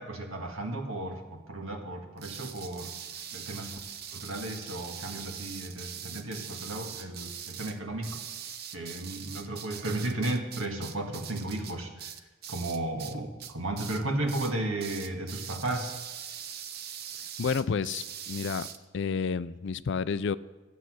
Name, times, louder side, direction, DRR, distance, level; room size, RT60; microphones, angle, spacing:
voice 1, 0.0-2.9 3.3-3.8 4.1-8.2 8.7-12.1 12.5-16.0, right 2 dB, 75° right, 1.7 m, -34 dB
sound 1, 2.2-13.1 13.4-14.0 14.3-14.5 14.8-18.8, right 8 dB, 45° right, 0.7 m, -42 dB
voice 2, 17.4-18.7 18.9-20.4, left 5 dB, 55° left, 0.4 m, -30 dB
14.5 x 8.2 x 6.3 m
head